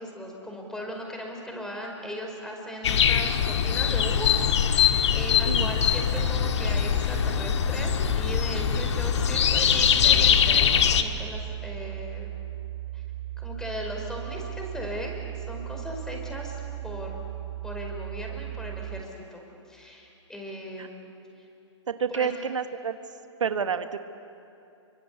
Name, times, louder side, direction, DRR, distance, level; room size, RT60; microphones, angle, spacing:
voice 1, 0.0-12.3 12.9-13.0 13.4-17.2 17.6-21.1 22.1-22.4, equal, 5° left, 1 dB, 4.9 m, -38 dB
sound 1, 2.8-11.0, left 8 dB, 70° left, 1.6 m, -22 dB
voice 2, 5.5-5.8 20.8-20.9 21.9-23.0 23.4-24.0, right 6 dB, 85° right, 9 dB, 1.3 m, -29 dB
sound 2, 6.1-19.0, right 15 dB, 25° right, 1.1 m, -37 dB
27.5 x 24.5 x 8.4 m, 2.6 s
hypercardioid pair, 125°, 15 cm